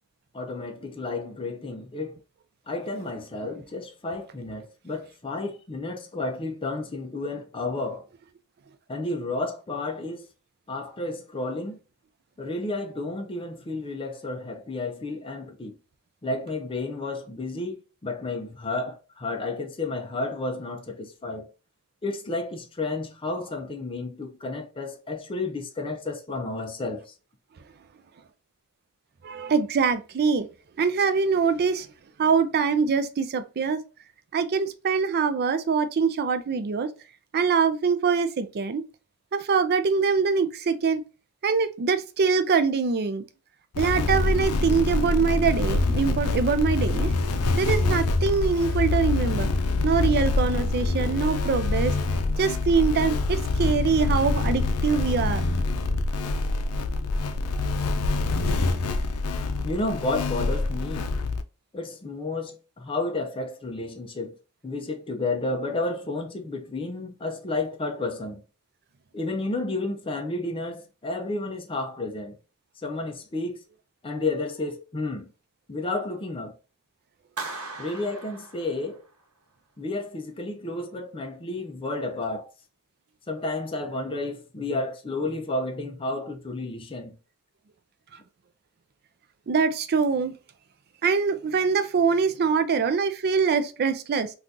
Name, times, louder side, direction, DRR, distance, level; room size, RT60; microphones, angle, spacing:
voice 1, 0.3-2.2 2.7-8.0 8.9-10.3 10.7-11.8 12.4-15.7 16.2-21.5 22.0-27.1 59.6-61.1 61.7-64.4 64.6-68.4 69.1-72.4 72.8-73.6 74.0-75.3 75.7-76.5 77.8-79.0 79.8-82.5 83.3-87.1, left 2 dB, 25° left, 0.5 m, -31 dB
voice 2, 29.2-30.5 30.8-31.9 32.2-33.8 34.3-36.9 37.3-38.8 39.3-41.0 41.4-43.2 43.8-47.1 47.6-49.5 49.8-51.9 52.4-55.4 89.5-90.3 91.0-94.3, right 5 dB, 45° right, 0.4 m, -23 dB
sound 1, 43.7-61.4, left 3 dB, 85° left, 0.5 m, -25 dB
Clapping, 77.4-79.2, right 3 dB, 70° right, 0.9 m, -38 dB
3.7 x 2.4 x 2.6 m
head